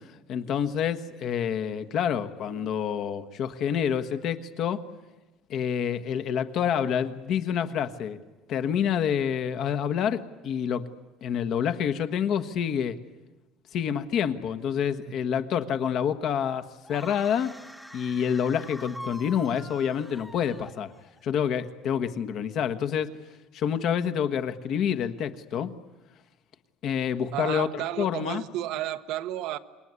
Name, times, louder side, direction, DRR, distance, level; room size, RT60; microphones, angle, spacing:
voice 1, 0.3-4.8 5.5-8.2 8.5-10.9 11.2-13.0 13.7-17.5 17.9-20.9 21.2-23.1 23.5-25.7 26.8-28.4, left 8 dB, 45° left, 9 dB, 1.4 m, -28 dB
sound 1, 16.8-21.2, equal, ahead, 1.3 m, -44 dB
voice 2, 27.3-29.6, right 13 dB, 65° right, 10 dB, 1.1 m, -32 dB
27.5 x 22.5 x 9.7 m, 1.1 s
cardioid pair, 155°, 0 cm